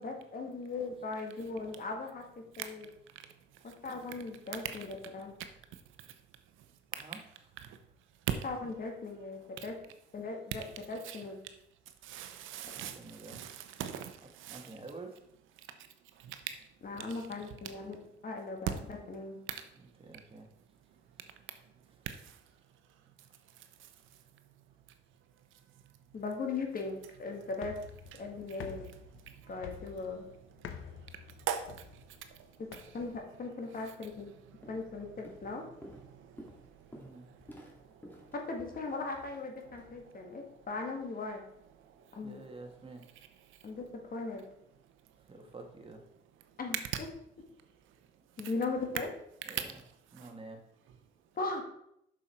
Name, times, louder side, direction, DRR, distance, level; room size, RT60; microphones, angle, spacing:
voice 1, 0.0-2.9 3.6-5.3 8.4-9.8 10.1-11.4 16.8-18.0 18.2-19.4 26.1-27.7 28.2-28.9 29.5-30.2 32.9-34.3 34.7-35.6 38.3-41.4 42.1-42.4 43.6-44.4 46.6-46.8 48.4-49.1 51.3-51.6, left 3 dB, 45° left, 2 dB, 1.9 m, -38 dB
voice 2, 12.0-14.7 16.2-16.5 22.3-22.4 30.6-31.2 31.5-32.0 32.3-32.4 36.1-36.5 36.8-37.2 50.2-50.3, right 9 dB, 90° right, 8 dB, 0.8 m, -42 dB
voice 3, 12.6-13.4 14.5-15.1 19.8-20.5 36.9-37.2 42.2-43.0 45.3-46.0 49.5-49.8 50.1-50.6, right 3 dB, 25° right, 3 dB, 1.7 m, -48 dB
sound 1, 27.5-33.2, left 8 dB, 85° left, 0.8 m, -49 dB
Walk footsteps, 34.3-34.4 34.6-35.0 35.2-39.9, equal, 10° left, 2.3 m, -53 dB
7.1 x 6.2 x 4.5 m, 0.76 s
cardioid pair, 90°, 20 cm